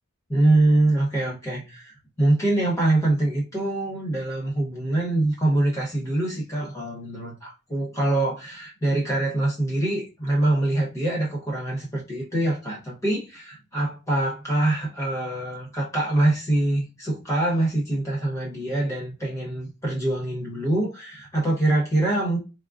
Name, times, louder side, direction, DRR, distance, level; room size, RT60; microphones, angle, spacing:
voice 1, 0.3-22.4, right 2 dB, 15° left, 0.8 m, -24 dB
3.6 x 2.0 x 2.3 m
head